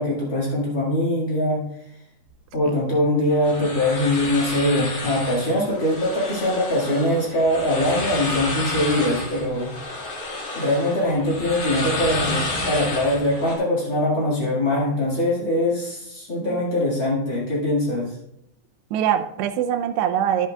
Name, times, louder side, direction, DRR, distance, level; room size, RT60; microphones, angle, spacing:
voice 1, 0.0-1.6 2.5-9.7 10.5-18.2, left 1 dB, 85° left, -6 dB, 1.0 m, -22 dB
sound 1, 3.3-13.5, left 2 dB, 50° left, 2.7 m, -30 dB
voice 2, 18.9-20.5, right 10 dB, 90° right, 6 dB, 2.4 m, -23 dB
11.5 x 10.0 x 2.3 m, 0.78 s
omnidirectional pair, 5.7 m